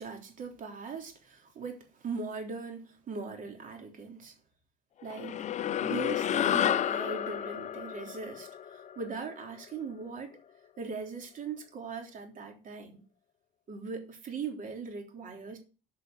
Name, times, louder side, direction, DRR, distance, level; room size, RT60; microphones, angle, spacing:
voice 1, 0.0-4.3 5.0-5.4 5.8-10.4 10.8-13.0 13.7-15.6, right 4 dB, 50° right, 3.4 m, -40 dB
sound 1, 5.1-9.8, left 10 dB, 45° left, 0.5 m, -31 dB
9.3 x 5.6 x 8.0 m
cardioid pair, 110°, 17 cm